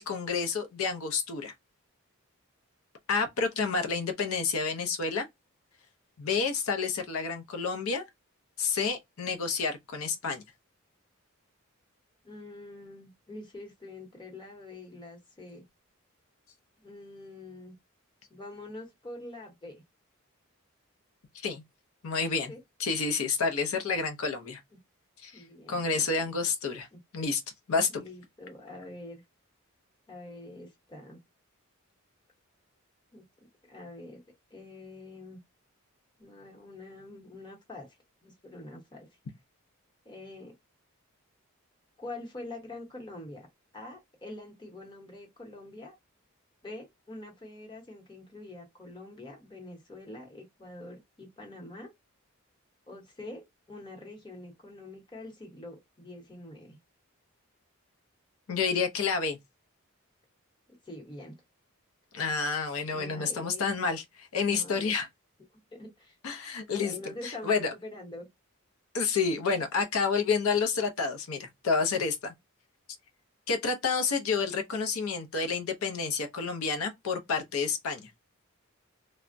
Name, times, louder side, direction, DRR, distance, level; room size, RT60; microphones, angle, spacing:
voice 1, 0.0-1.5 3.1-5.3 6.2-8.0 8.6-10.4 21.3-21.6 22.0-22.5 22.8-24.6 25.2-25.4 25.7-26.9 27.1-27.4 27.7-28.0 58.5-59.4 62.1-65.1 66.2-66.9 67.2-67.7 68.9-72.3 73.5-78.1, left 5 dB, 75° left, 0.5 m, -29 dB
voice 2, 12.2-15.6 16.8-17.7 18.3-19.8 22.5-22.6 25.3-26.4 26.9-27.0 27.9-29.2 30.1-31.2 33.1-34.2 34.5-35.4 36.2-38.0 38.2-39.1 40.0-40.5 42.0-43.5 43.7-46.0 46.6-51.9 52.9-56.8 60.8-61.3 62.9-63.6 64.4-64.9 65.5-66.2 66.8-68.3, left 2 dB, 20° left, 0.9 m, -45 dB
3.3 x 2.0 x 2.5 m
head